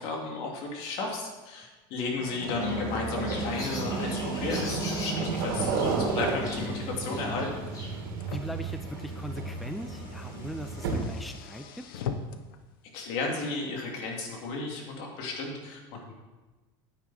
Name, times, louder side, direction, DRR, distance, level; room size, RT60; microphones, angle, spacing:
voice 1, 0.0-5.7 6.0-7.6 10.3-10.4 12.9-16.1, left 3 dB, 60° left, 0 dB, 2.8 m, -34 dB
Car, 2.0-12.6, left 7 dB, 85° left, 0.9 m, -44 dB
sound 1, 2.2-11.3, right 4 dB, 80° right, 2.2 m, -33 dB
sound 2, 2.6-8.1, left 3 dB, 30° left, 2.6 m, -38 dB
voice 2, 8.2-11.8, equal, ahead, 8 dB, 0.5 m, -40 dB
9.5 x 9.3 x 4.3 m, 1.2 s
supercardioid pair, 115°, 11 cm